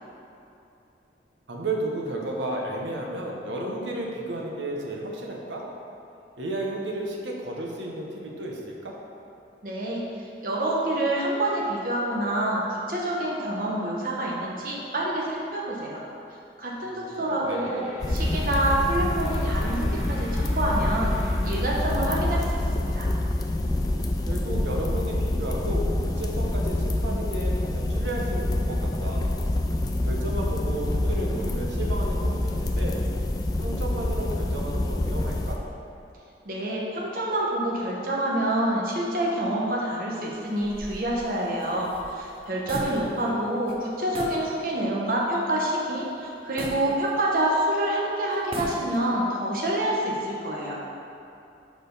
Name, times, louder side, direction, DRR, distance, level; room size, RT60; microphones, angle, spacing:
voice 1, 1.5-5.6 6.4-9.0 16.8-17.7 24.2-29.4 30.0-33.0 33.6-35.6 42.9-43.4, right 1 dB, 90° right, -1 dB, 0.9 m, -33 dB
voice 2, 9.6-16.0 16.6-21.1 21.4-23.1 36.4-50.8, right 1 dB, 50° right, -4 dB, 0.9 m, -27 dB
sound 1, 17.5-23.9, left 1 dB, 35° left, 1.4 m, -46 dB
sound 2, 18.0-35.5, left 1 dB, 20° left, 0.3 m, -26 dB
sound 3, 40.6-43.4 43.7-43.8 44.1-44.5 44.9-45.0 46.6-47.6 48.3-49.2, right 1 dB, 30° right, 0.5 m, -37 dB
5.0 x 4.4 x 5.2 m, 2.8 s
head